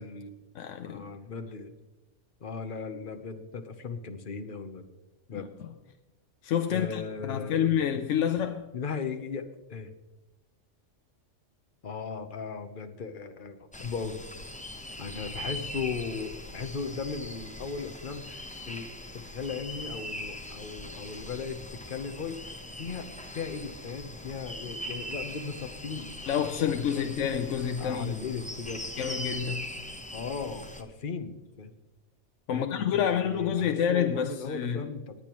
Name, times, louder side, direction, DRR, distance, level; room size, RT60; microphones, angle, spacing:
voice 1, 0.0-0.4 0.8-1.7 2.4-4.8 5.3-5.5 6.7-7.8 8.7-9.9 11.8-14.2 15.0-27.3 27.8-28.9 30.1-31.7 32.5-35.2, left 5 dB, 45° left, 1.0 m, -37 dB
voice 2, 0.5-1.1 5.3-5.5 6.4-8.7 26.3-28.2 29.0-29.8 32.5-34.9, left 8 dB, 80° left, 1.0 m, -28 dB
sound 1, 13.7-30.8, left 1 dB, 5° left, 0.7 m, -41 dB
20.0 x 8.7 x 3.0 m
omnidirectional pair, 1.3 m